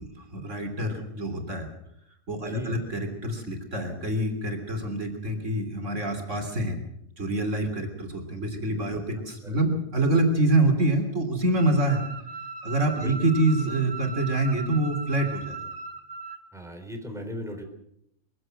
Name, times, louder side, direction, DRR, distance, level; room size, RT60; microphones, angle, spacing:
voice 1, 0.0-1.7 2.3-6.8 7.2-12.0 12.6-15.6, right 2 dB, 60° right, 5 dB, 3.6 m, -26 dB
voice 2, 2.4-2.9 9.4-9.6 13.0-13.2 16.5-17.6, left 1 dB, ahead, 4 dB, 3.9 m, -37 dB
sound 1, 11.6-16.4, right 4 dB, 80° right, 2.0 m, -38 dB
23.5 x 16.0 x 7.7 m, 0.76 s
omnidirectional pair, 1.4 m